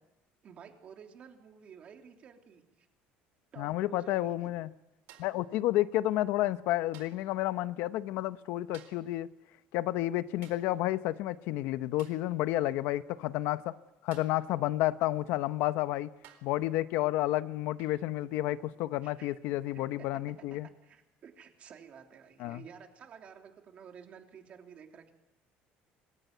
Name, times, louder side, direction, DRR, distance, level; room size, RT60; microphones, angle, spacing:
voice 1, 0.4-2.9 3.5-4.5 12.5-12.8 19.0-19.3 19.7-20.1 20.8-25.1, right 7 dB, 35° right, 3.2 m, -52 dB
voice 2, 3.6-4.7 5.2-9.3 9.7-13.7 14.0-16.1 16.4-20.7 22.4-22.6, left 15 dB, 75° left, 0.9 m, -31 dB
sound 1, 5.1-5.5 6.9-7.3 8.7-9.1 10.4-10.7 12.0-12.3 14.1-14.5 15.5-15.6 16.2-16.6 17.8-18.0 19.7-19.9, right 11 dB, 75° right, 4.1 m, -56 dB
26.0 x 20.5 x 9.4 m
cardioid pair, 165°, 4 cm